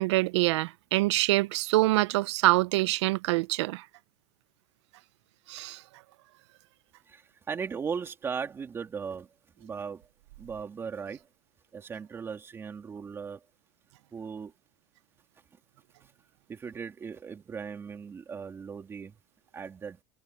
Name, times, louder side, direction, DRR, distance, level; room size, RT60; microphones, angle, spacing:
voice 1, 0.0-3.8 5.5-5.8, right 19 dB, 85° right, 0.7 m, -25 dB
voice 2, 7.1-9.3 9.6-10.0 10.4-11.2 11.7-13.4 14.1-14.5 16.5-19.1 19.5-20.0, right 6 dB, 15° right, 3.2 m, -37 dB
supercardioid pair, 165°, 14 cm